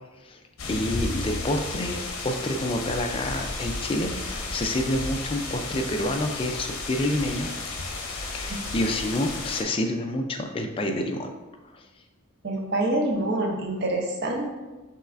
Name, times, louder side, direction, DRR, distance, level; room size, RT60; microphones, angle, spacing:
sound 1, 0.6-9.6, left 3 dB, 85° left, 0.7 m, -33 dB
voice 1, 0.7-7.5 8.3-11.3 11.7-11.8, left 1 dB, 25° left, 4 dB, 0.3 m, -28 dB
voice 2, 12.4-14.5, right 1 dB, 50° right, 1 dB, 0.6 m, -26 dB
5.5 x 3.1 x 2.5 m, 1.2 s
head